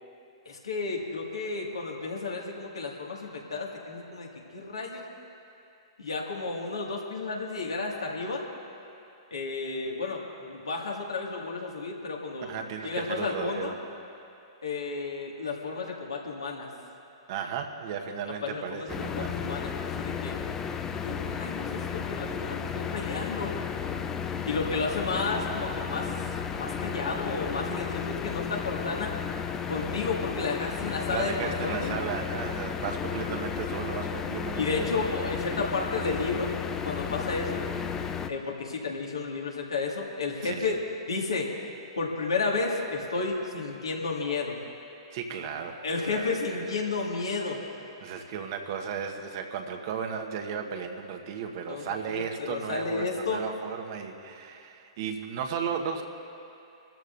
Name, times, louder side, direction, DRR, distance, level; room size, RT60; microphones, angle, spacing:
voice 1, 0.5-5.0 6.0-8.5 9.3-12.5 12.8-13.8 14.6-16.7 18.4-20.4 21.0-23.5 24.4-26.1 26.5-29.1 29.7-32.0 34.5-36.5 36.8-37.6 38.3-40.7 41.1-41.5 42.0-44.6 45.8-47.6 51.7-53.4, left 4 dB, 80° left, -1 dB, 2.0 m, -32 dB
voice 2, 12.4-13.8 17.3-19.6 31.1-34.9 40.4-40.8 45.1-46.9 48.0-56.0, right 7 dB, 50° right, 3 dB, 1.2 m, -35 dB
sound 1, 18.9-38.3, left 7 dB, 20° left, 0.6 m, -33 dB
26.5 x 13.5 x 2.6 m, 2.7 s
figure-of-eight pair, 110°, 3 cm